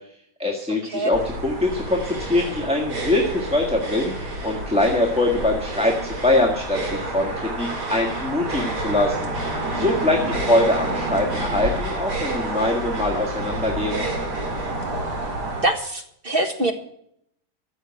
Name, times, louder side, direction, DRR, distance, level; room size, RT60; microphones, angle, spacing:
voice 1, 0.4-9.3 9.7-14.0, left 2 dB, 5° right, -1 dB, 1.5 m, -23 dB
sound 1, 1.1-15.6, right 2 dB, 70° right, 3.0 m, -29 dB
voice 2, 15.6-16.7, right 2 dB, 35° right, 5 dB, 1.7 m, -24 dB
14.0 x 7.3 x 8.8 m, 0.70 s
omnidirectional pair, 1.8 m